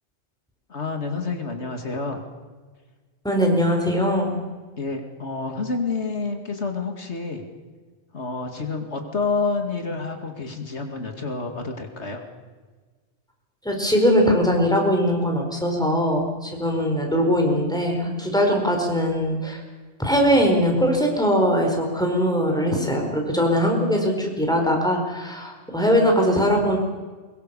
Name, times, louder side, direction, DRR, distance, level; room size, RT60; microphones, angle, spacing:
voice 1, 0.7-2.2 4.8-7.4 8.1-12.2, left 4 dB, 85° left, 4 dB, 2.7 m, -28 dB
voice 2, 3.2-4.5 13.6-19.6 20.0-26.8, equal, 5° left, 2 dB, 4.4 m, -21 dB
23.5 x 22.0 x 6.9 m, 1.4 s
omnidirectional pair, 1.1 m